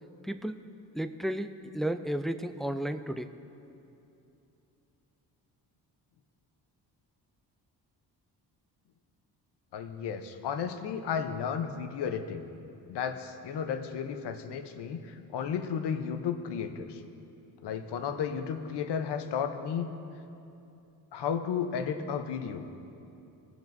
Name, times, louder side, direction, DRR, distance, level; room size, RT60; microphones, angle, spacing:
voice 1, 0.2-0.6 0.9-1.5 1.7-3.3, right 1 dB, ahead, 9 dB, 0.4 m, -32 dB
voice 2, 9.7-12.5 12.9-17.0 17.6-19.9 21.1-22.7, left 7 dB, 75° left, 7 dB, 0.9 m, -33 dB
22.5 x 7.9 x 2.7 m, 2.8 s
cardioid pair, 75°, 41 cm